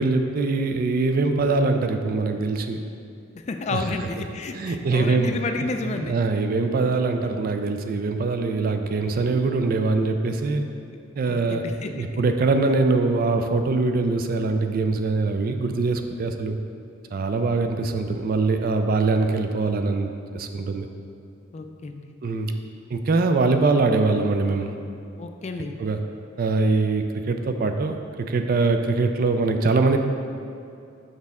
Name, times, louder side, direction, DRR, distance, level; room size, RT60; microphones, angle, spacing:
voice 1, 0.0-2.8 3.7-3.8 4.5-5.3 5.8-10.6 11.1-16.6 17.1-20.9 22.2-22.5 22.9-24.7 25.8-26.0 26.4-30.0, right 3 dB, 45° right, 6 dB, 0.4 m, -23 dB
voice 2, 3.3-6.1 11.2-12.2 21.5-22.1 25.2-25.7, left 3 dB, 35° left, 6 dB, 0.3 m, -31 dB
6.5 x 5.2 x 3.5 m, 2.5 s
head